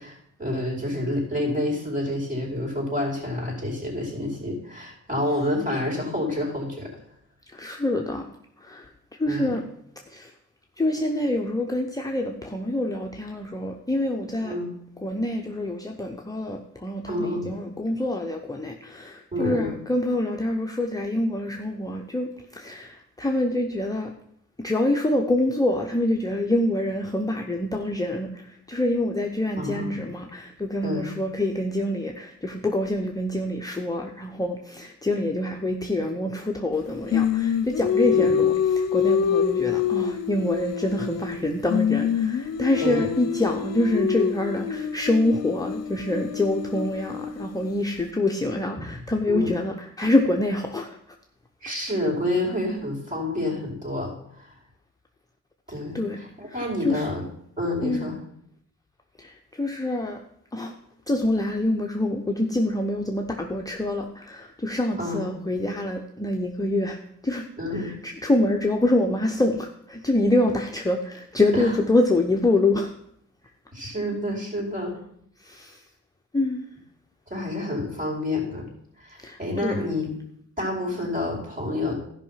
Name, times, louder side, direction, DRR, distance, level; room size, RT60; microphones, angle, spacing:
voice 1, 0.0-6.9 9.2-9.6 14.4-14.7 17.0-17.6 19.3-19.7 29.6-30.1 30.8-31.1 38.1-38.4 42.8-43.1 49.3-49.6 51.6-54.5 55.7-57.2 57.6-58.2 65.0-65.3 67.6-67.9 71.5-71.8 73.7-75.0 77.3-78.7 79.0-80.1 80.6-81.9, left 1 dB, 25° right, -2 dB, 5.1 m, -28 dB
voice 2, 7.5-8.2 8.6-8.9 9.2-9.6 10.1-10.3 10.8-14.6 15.0-24.1 24.6-51.0 55.9-56.2 56.5-57.0 57.8-58.1 59.2-60.2 60.5-60.7 61.1-67.0 67.2-67.5 67.7-72.9 75.4-75.8 76.3-76.6 79.2-79.8, left 1 dB, 10° left, 1 dB, 0.9 m, -26 dB
Singing, 37.1-41.4 41.7-47.7, left 7 dB, 60° left, 0.7 m, -26 dB
13.0 x 5.6 x 5.8 m, 0.69 s
cardioid pair, 90°, 30 cm